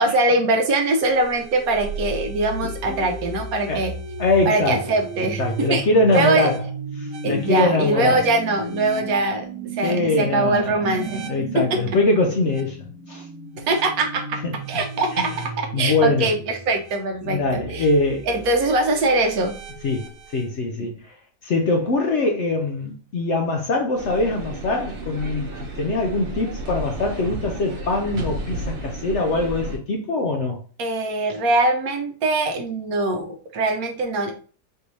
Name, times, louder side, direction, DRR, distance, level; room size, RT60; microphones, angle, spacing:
voice 1, 0.0-3.9 4.5-6.5 7.2-9.5 9.7-11.3 11.5-11.8 13.7-14.4 14.7-17.9 18.3-19.5 30.8-34.3, right 2 dB, 70° right, 1.1 m, -22 dB
sound 1, 0.7-20.5, right 3 dB, 90° right, 1.4 m, -35 dB
voice 2, 2.6-3.0 3.7-3.8 4.2-4.8 5.4-6.6 7.0-8.2 9.8-10.8 11.3-13.3 15.2-15.3 15.7-16.3 17.2-18.3 19.8-21.2 21.4-30.6, left 2 dB, 60° left, 0.8 m, -23 dB
sound 2, 24.0-29.8, right 2 dB, 40° right, 1.0 m, -32 dB
4.4 x 2.7 x 3.1 m
omnidirectional pair, 1.7 m